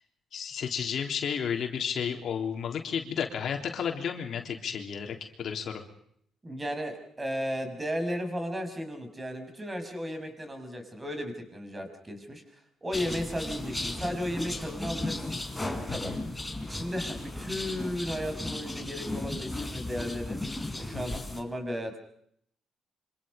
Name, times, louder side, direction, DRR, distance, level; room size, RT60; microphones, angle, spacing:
voice 1, 0.3-5.8 15.9-16.2 20.9-21.2, left 7 dB, 65° left, 3 dB, 3.6 m, -32 dB
voice 2, 6.4-12.4 12.8-15.4 15.9-16.1 16.6-20.4 20.7-22.0, equal, 20° right, 6 dB, 6.3 m, -35 dB
sound 1, 12.9-21.4, left 2 dB, 10° left, 4.6 m, -35 dB
27.0 x 26.0 x 5.4 m, 0.69 s
cardioid pair, 90°, 0 cm